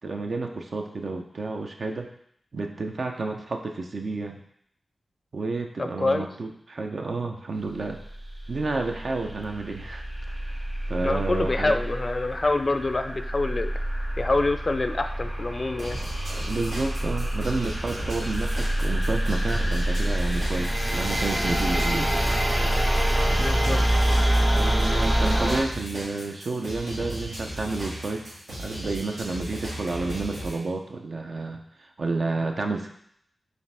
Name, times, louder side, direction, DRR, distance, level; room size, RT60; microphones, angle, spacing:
voice 1, 0.0-2.1 2.5-4.4 5.3-8.0 8.5-11.8 16.3-22.1 23.6-23.8 24.5-28.2 28.6-31.6 32.0-32.9, right 3 dB, 65° right, 3 dB, 0.5 m, -30 dB
voice 2, 5.8-6.3 11.0-13.7 14.2-16.0 21.9-22.1 23.4-23.8 24.1-24.3, left 2 dB, 50° left, 8 dB, 0.3 m, -26 dB
sound 1, 8.0-25.6, right 1 dB, 20° right, 0.8 m, -26 dB
sound 2, 15.8-30.6, right 1 dB, 85° right, 1.6 m, -36 dB
5.0 x 2.5 x 3.3 m, 0.68 s
cardioid pair, 40°, 0 cm